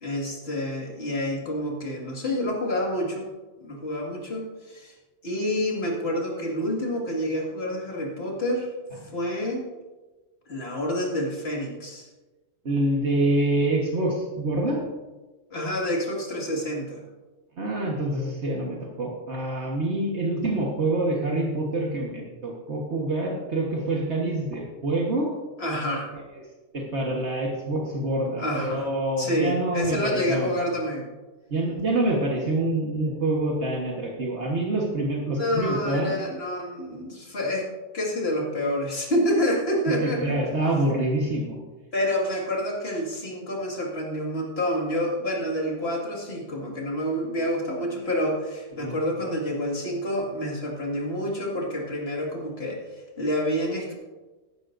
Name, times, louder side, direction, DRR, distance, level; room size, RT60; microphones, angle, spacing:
voice 1, 0.0-3.3 3.6-4.9 5.2-8.7 9.1-9.7 10.5-12.1 15.5-17.0 25.6-26.1 28.4-28.9 29.2-31.1 35.4-37.7 37.9-40.5 41.9-52.8 53.2-53.9, equal, 55° left, -1 dB, 2.3 m, -28 dB
voice 2, 12.7-14.8 17.6-25.3 26.7-30.5 31.5-36.2 40.0-41.6 48.7-48.9, right 2 dB, 65° right, -2 dB, 1.7 m, -26 dB
14.0 x 11.5 x 2.6 m, 1.2 s
omnidirectional pair, 1.3 m